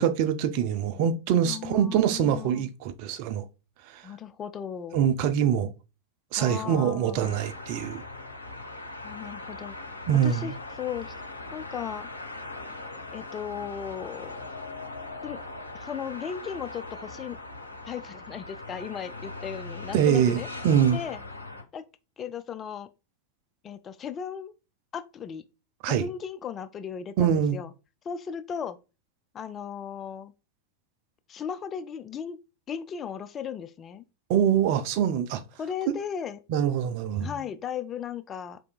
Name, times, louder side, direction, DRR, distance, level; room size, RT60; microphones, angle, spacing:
voice 1, 0.0-3.4 3.9-4.0 4.9-5.7 6.3-8.0 10.1-10.5 19.9-21.0 25.8-26.1 27.2-27.6 34.3-35.4 36.5-37.3, right 9 dB, 45° right, 0.5 m, -24 dB
voice 2, 1.4-2.7 4.0-5.0 6.3-7.4 9.0-9.8 10.2-10.5 10.8-12.1 13.1-14.4 15.2-15.4 15.7-17.4 17.8-20.5 20.9-21.2 21.7-21.8 22.2-22.9 23.6-24.5 24.9-25.4 25.9-27.7 28.0-28.8 29.3-30.3 31.3-32.4 32.7-34.0 35.6-36.4 37.2-38.6, left 8 dB, 25° left, 0.3 m, -36 dB
sound 1, 7.2-21.6, left 2 dB, 80° left, 0.6 m, -40 dB
4.8 x 3.3 x 2.3 m
figure-of-eight pair, 90°, 0 cm